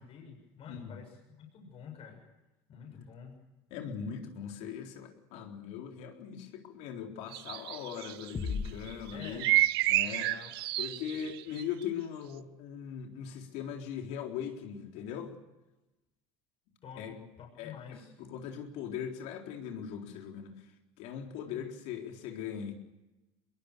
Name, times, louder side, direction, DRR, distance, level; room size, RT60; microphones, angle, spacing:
voice 1, 0.0-2.2 2.7-3.3 9.1-9.6 10.0-10.5 10.9-11.3 16.8-18.1 21.5-21.6, left 7 dB, 50° left, 1 dB, 7.2 m, -49 dB
voice 2, 3.7-9.5 9.9-10.3 10.8-15.3 17.0-17.1 17.6-20.6 21.0-22.8, left 8 dB, 70° left, 3 dB, 4.0 m, -40 dB
sound 1, 7.3-8.5 8.9-11.6, right 15 dB, 85° right, 0.8 m, -29 dB
sound 2, 8.3-10.1, left 5 dB, 30° left, 2.0 m, -39 dB
23.5 x 22.0 x 6.8 m, 1.0 s
hypercardioid pair, 85°, 12 cm